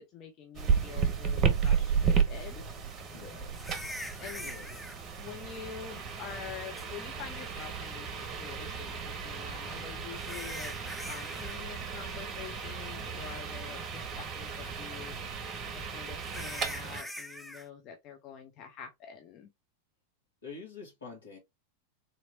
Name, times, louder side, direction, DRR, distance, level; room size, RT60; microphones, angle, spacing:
voice 1, 0.0-2.6 4.2-4.5 5.2-15.5 15.9-19.5, left 8 dB, 35° left, 0.8 m, -46 dB
sound 1, 0.5-17.0, right 6 dB, 30° right, 0.8 m, -33 dB
sound 2, 1.7-1.8 3.5-5.0 6.8-6.9 9.4-11.6 11.9-12.2 12.6-12.7 13.3-13.4 16.2-17.7, equal, ahead, 0.5 m, -43 dB
voice 2, 3.1-3.6 4.4-4.7 20.4-21.4, left 4 dB, 70° left, 2.0 m, -46 dB
3.9 x 2.9 x 2.7 m
figure-of-eight pair, 90°, 0 cm